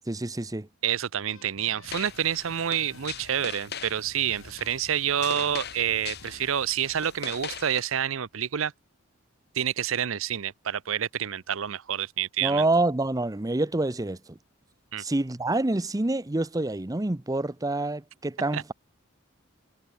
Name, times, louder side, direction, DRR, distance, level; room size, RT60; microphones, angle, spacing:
voice 1, 0.1-0.7 12.4-14.4 15.0-18.7, right 2 dB, 15° right, 0.7 m, -27 dB
voice 2, 0.8-8.7 9.5-12.6 14.9-15.0 18.5-18.6, right 9 dB, 70° right, 0.6 m, -28 dB
sound 1, 1.3-6.5, left 3 dB, 75° left, 3.2 m, -52 dB
sound 2, 1.8-7.8, left 7 dB, 50° left, 6.1 m, -41 dB
head